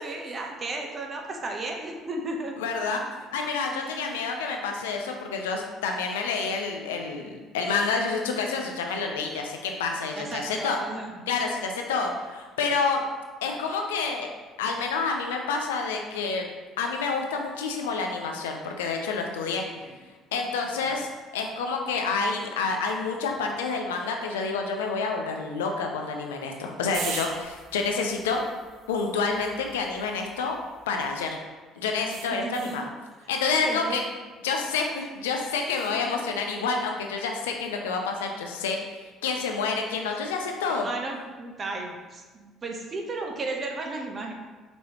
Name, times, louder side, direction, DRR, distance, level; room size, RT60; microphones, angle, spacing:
voice 1, 0.0-2.5 3.7-4.1 10.1-11.2 19.6-19.9 20.8-21.0 32.3-32.8 33.6-34.0 35.9-36.2 40.7-44.3, right 2 dB, 40° right, 2 dB, 0.8 m, -35 dB
voice 2, 2.6-3.0 3.3-10.8 11.3-13.0 13.4-14.3 14.6-16.5 16.8-19.6 20.3-21.1 21.3-28.4 28.9-30.6 30.9-31.4 31.8-32.9 33.3-34.0 34.4-40.9, left 4 dB, 90° left, 2 dB, 0.5 m, -28 dB
sound 1, 26.9-31.3 32.1-32.9 35.6-36.0, right 6 dB, 65° right, 0.5 m, -41 dB
5.3 x 3.0 x 2.9 m, 1.3 s
hypercardioid pair, 65°, 0 cm